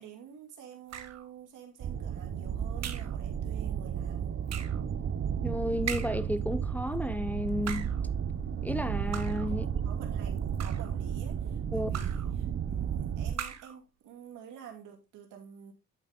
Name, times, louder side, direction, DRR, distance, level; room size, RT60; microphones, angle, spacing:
voice 1, 0.0-4.4 9.8-15.7, right 8 dB, 85° right, 2.6 m, -49 dB
sound 1, 0.9-1.3 2.8-3.2 4.5-4.8 5.9-6.3 7.5-8.0 9.1-9.5 10.4-11.0 11.9-12.3 13.3-13.8, right 8 dB, 60° right, 1.3 m, -40 dB
sound 2, 1.8-13.4, right 8 dB, 45° right, 0.8 m, -33 dB
voice 2, 5.4-7.9 8.6-9.8 11.7-11.9, left 1 dB, 5° left, 0.7 m, -32 dB
11.0 x 5.1 x 3.7 m
cardioid pair, 90°, 30 cm